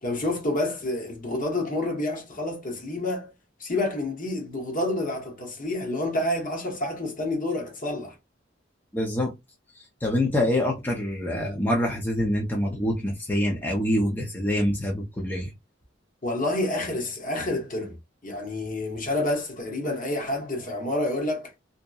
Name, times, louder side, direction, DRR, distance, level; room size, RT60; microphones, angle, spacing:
voice 1, 0.0-3.3 3.6-8.1 16.2-18.0 18.2-21.5, left 1 dB, 45° left, 0.9 m, -28 dB
voice 2, 8.9-9.3 9.7-15.5, left 1 dB, 10° left, 0.6 m, -26 dB
2.7 x 2.1 x 2.3 m
head